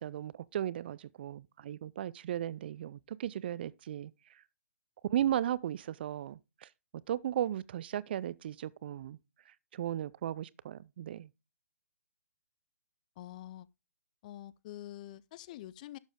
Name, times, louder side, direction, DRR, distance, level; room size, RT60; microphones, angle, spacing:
voice 1, 0.0-4.1 5.1-6.7 7.1-9.2 9.7-11.3, right 11 dB, 40° right, 0.4 m, -36 dB
voice 2, 13.2-13.7 14.2-16.0, left 14 dB, 30° left, 0.4 m, -46 dB
11.5 x 7.1 x 3.6 m
figure-of-eight pair, 135°, 8 cm